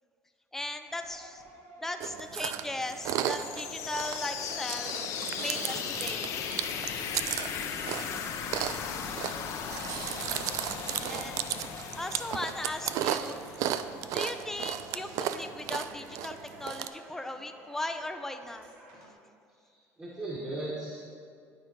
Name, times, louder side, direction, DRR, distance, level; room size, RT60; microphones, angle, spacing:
voice 1, 0.5-1.4 1.8-5.0 5.4-6.4 11.0-11.5 11.8-13.4 14.1-18.7, left 2 dB, 5° left, 6 dB, 0.6 m, -37 dB
sound 1, 0.9-19.1, right 2 dB, 85° right, 1.4 m, -52 dB
Chewing mastication, 2.0-16.9, right 11 dB, 65° right, 0.4 m, -35 dB
sound 2, 2.8-14.5, left 7 dB, 65° left, 0.8 m, -37 dB
voice 2, 9.0-10.3 10.7-11.1 19.5-21.1, right 2 dB, 20° right, -7 dB, 1.9 m, -41 dB
11.5 x 4.4 x 4.6 m, 2.3 s
supercardioid pair, 90°, 6 cm